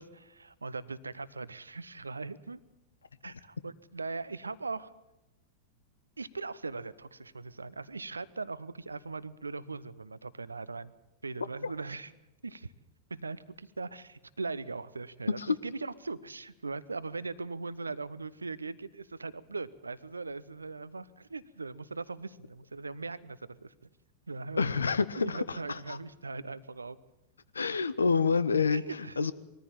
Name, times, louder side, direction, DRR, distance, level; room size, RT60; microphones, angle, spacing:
voice 1, 0.0-2.6 3.2-4.9 6.2-10.9 11.2-12.1 12.4-12.7 13.1-23.9 24.3-24.7 25.2-27.0 28.7-29.3, right 3 dB, 80° right, 17 dB, 0.7 m, -40 dB
voice 2, 24.6-26.0 27.5-29.3, left 5 dB, 75° left, 16 dB, 0.8 m, -28 dB
21.0 x 14.0 x 8.9 m, 0.97 s
figure-of-eight pair, 90°, 0 cm